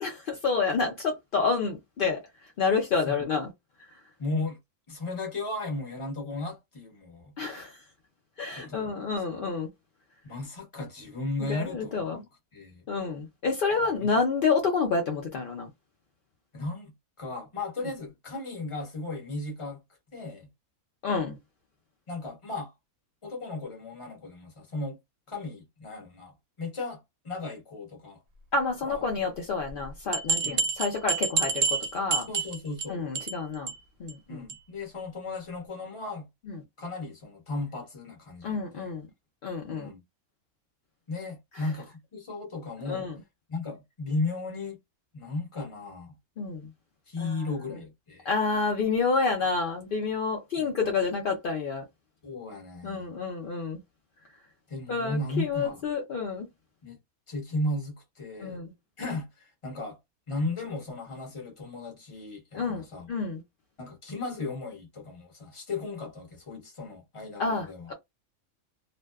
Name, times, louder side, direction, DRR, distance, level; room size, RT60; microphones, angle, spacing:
voice 1, 0.0-2.2 2.6-3.5 7.4-7.7 8.4-9.7 11.4-12.2 12.9-15.7 21.0-21.4 28.5-31.7 31.9-32.3 32.9-33.7 34.0-34.4 36.5-36.6 38.4-39.1 39.4-39.9 42.9-43.2 46.4-46.7 47.2-47.5 48.3-51.8 52.8-53.8 54.9-56.5 58.4-58.7 62.5-63.4 67.4-67.9, left 4 dB, 65° left, 0.5 m, -29 dB
voice 2, 4.2-4.6 4.9-7.3 8.5-8.9 10.2-12.2 12.5-12.8 13.7-14.1 16.5-19.8 20.1-20.5 22.1-22.7 23.2-25.0 25.3-28.2 28.8-29.0 30.4-30.7 32.3-33.0 34.3-36.3 36.8-38.9 39.7-40.0 41.1-43.1 43.5-44.8 45.1-46.2 47.1-48.3 50.6-50.7 52.2-53.1 54.7-55.8 56.8-57.0 57.3-58.6 59.0-60.0 60.3-63.1 63.8-67.9, left 2 dB, 25° left, 0.8 m, -35 dB
sound 1, 29.7-29.8 30.1-32.9 33.1-33.4 33.7-33.8 34.1-34.2 34.5-34.6, right 5 dB, 70° right, 0.9 m, -28 dB
2.5 x 2.1 x 2.3 m
omnidirectional pair, 1.5 m